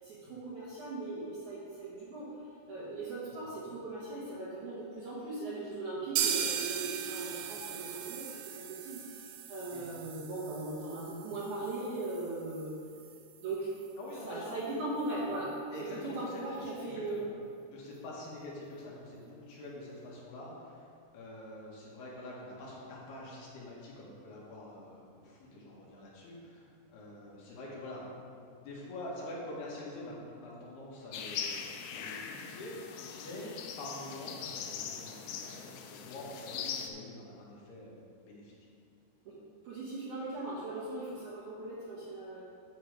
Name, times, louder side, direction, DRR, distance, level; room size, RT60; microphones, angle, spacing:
voice 1, 0.0-2.4 2.7-12.8 13.4-13.7 14.2-17.2 39.3-39.4 39.6-42.4, right 2 dB, 60° right, -7 dB, 2.1 m, -39 dB
sound 1, 6.2-13.9 14.2-14.3 14.6-14.7 15.1-15.2, right 8 dB, 80° right, 2.7 m, -38 dB
voice 2, 14.0-14.6 15.7-17.3 17.7-20.9 21.1-28.0 28.6-31.6 31.9-38.6, left 1 dB, 70° left, -5 dB, 3.5 m, -46 dB
sound 2, 31.1-36.9, left 7 dB, 85° left, 2.9 m, -41 dB
9.3 x 7.3 x 4.9 m, 2.4 s
omnidirectional pair, 5.0 m